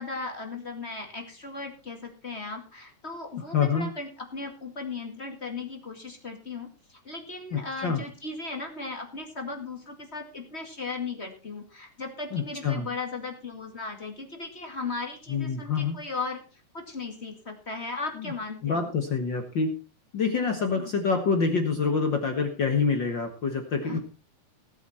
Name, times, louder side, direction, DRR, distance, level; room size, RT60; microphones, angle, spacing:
voice 1, 0.0-18.9 20.7-20.9 23.8-24.0, left 3 dB, 25° left, 3 dB, 2.0 m, -37 dB
voice 2, 3.5-3.9 7.5-8.0 12.3-12.9 15.3-16.0 18.2-18.3 18.6-19.8 20.1-24.0, left 5 dB, 50° left, 4 dB, 1.6 m, -26 dB
18.5 x 8.2 x 4.3 m, 0.34 s
omnidirectional pair, 3.6 m